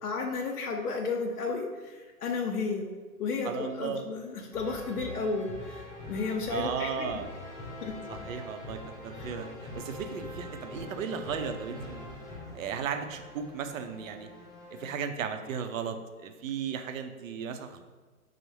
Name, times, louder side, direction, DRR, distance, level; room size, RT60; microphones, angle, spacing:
voice 1, 0.0-2.9 3.2-7.1 7.8-7.9 9.1-9.3, left 4 dB, 90° left, 2 dB, 0.7 m, -33 dB
voice 2, 3.4-4.0 6.5-7.3 8.1-14.3 14.7-17.8, right 7 dB, 65° right, 7 dB, 0.6 m, -36 dB
sound 1, 4.5-15.0, left 1 dB, 20° left, 0.7 m, -43 dB
5.5 x 2.0 x 3.1 m, 1.4 s
hypercardioid pair, 140°, 43 cm